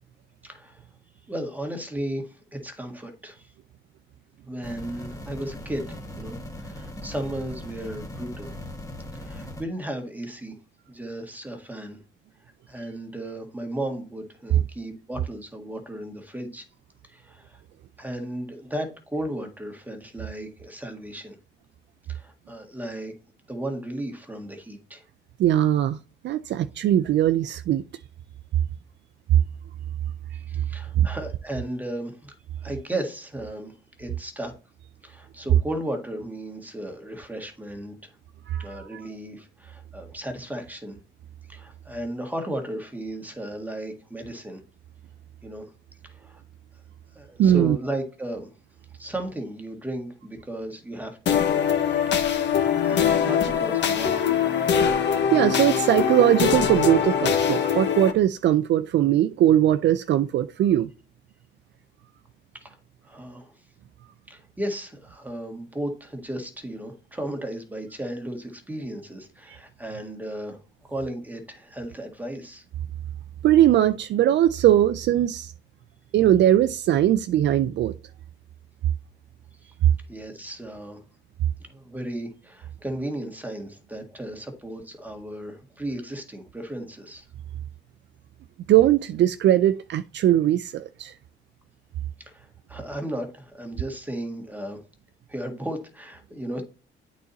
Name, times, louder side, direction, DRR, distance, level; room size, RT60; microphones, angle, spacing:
voice 1, 0.4-0.8 1.3-3.5 4.4-8.5 9.1-10.6 10.9-12.0 12.7-16.6 17.1-17.6 18.0-21.3 22.1-23.1 23.5-25.0 30.3-32.3 32.6-33.7 34.0-34.5 35.0-38.1 38.6-41.0 41.5-44.6 45.4-45.7 46.0-46.4 47.1-48.5 48.9-51.4 52.0-52.3 52.8-54.4 62.5-62.8 63.0-63.5 64.3-72.6 80.1-81.0 81.6-87.2 92.2-94.8 95.3-96.6, right 1 dB, 10° right, 1.6 m, -35 dB
sound 1, 4.6-9.6, left 1 dB, 15° left, 1.6 m, -39 dB
voice 2, 25.4-26.0 26.2-27.8 29.3-29.4 31.0-31.1 38.5-39.1 47.4-47.8 55.3-60.9 73.4-75.5 76.1-77.9 79.8-79.9 88.7-91.1, right 12 dB, 65° right, 0.4 m, -20 dB
sound 2, 51.3-58.1, left 8 dB, 65° left, 1.1 m, -22 dB
8.5 x 4.1 x 4.0 m
cardioid pair, 90°, 20 cm